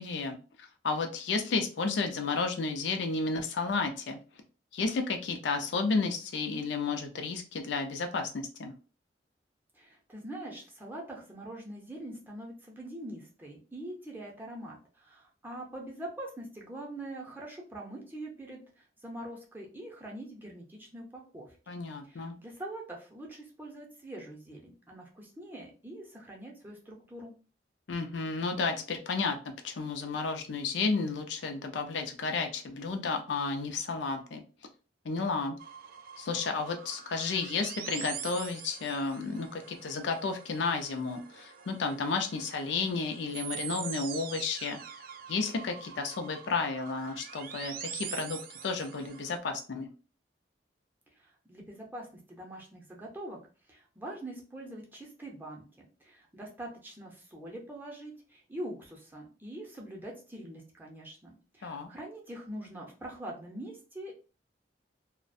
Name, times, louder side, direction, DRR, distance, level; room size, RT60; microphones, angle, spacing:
voice 1, 0.0-4.2 4.7-8.7 21.7-22.4 27.9-34.4 35.0-35.6 36.2-44.8 45.3-49.9 61.6-61.9, left 4 dB, 85° left, 5 dB, 0.5 m, -32 dB
voice 2, 9.7-21.6 22.0-27.3 51.2-53.4 53.7-64.1, right 1 dB, 10° right, -2 dB, 0.6 m, -44 dB
sound 1, 35.6-49.4, right 8 dB, 55° right, 0.3 m, -44 dB
2.4 x 2.1 x 2.5 m, 0.35 s
head